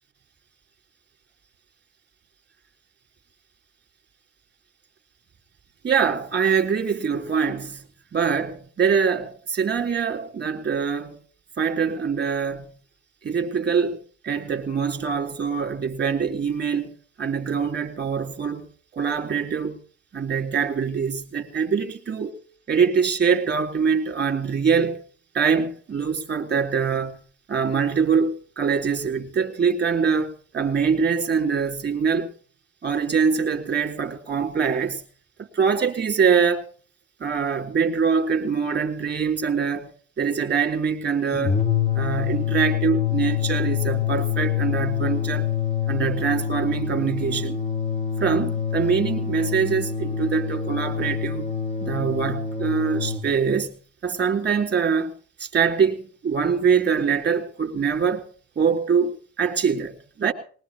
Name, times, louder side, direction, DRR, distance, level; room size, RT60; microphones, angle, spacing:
voice 1, 5.8-7.8 8.1-11.2 11.6-12.7 13.2-14.0 14.2-18.7 18.9-19.8 20.1-22.4 22.7-25.0 25.3-27.2 27.5-32.3 32.8-35.0 35.4-36.7 37.2-39.9 40.2-41.6 41.9-45.5 45.9-47.6 48.2-51.5 51.8-53.8 54.0-55.1 55.4-58.3 58.5-60.3, right 6 dB, 35° right, 3.4 m, -24 dB
sound 1, 41.3-53.3, left 8 dB, 20° left, 1.2 m, -26 dB
21.0 x 19.5 x 2.9 m
cardioid pair, 90°, 30 cm